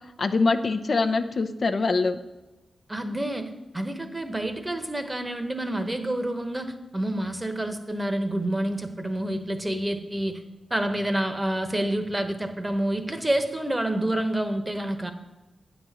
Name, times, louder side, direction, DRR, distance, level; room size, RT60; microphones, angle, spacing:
voice 1, 0.2-2.2, left 3 dB, 60° left, 6 dB, 0.5 m, -24 dB
voice 2, 2.9-10.4 10.7-15.1, right 1 dB, 20° right, 8 dB, 1.0 m, -28 dB
8.8 x 4.1 x 7.2 m, 1.1 s
supercardioid pair, 45°, 0 cm